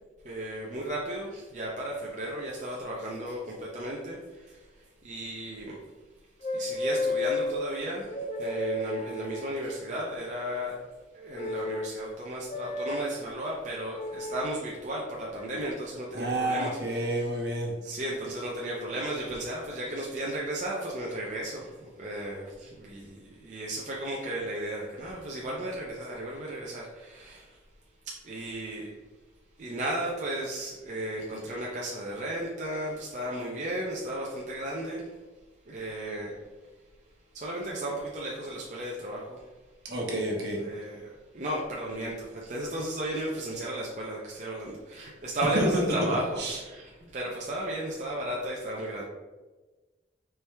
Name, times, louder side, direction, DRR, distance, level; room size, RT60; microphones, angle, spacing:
voice 1, 0.2-4.6 5.0-5.8 6.5-10.8 11.1-17.1 17.8-27.6 28.1-28.9 29.6-35.1 35.7-36.4 37.3-39.4 40.6-49.0, right 1 dB, 40° right, -3 dB, 0.6 m, -34 dB
sound 1, 6.4-7.5 8.1-9.8 11.3-11.9 12.5-13.0 13.9-14.5 15.4-15.7, left 2 dB, 35° left, 0.4 m, -32 dB
voice 2, 16.1-17.7 39.8-40.6 45.5-45.8 46.4-46.6, right 1 dB, 65° right, -2 dB, 1.1 m, -29 dB
4.5 x 3.3 x 3.3 m, 1.2 s
head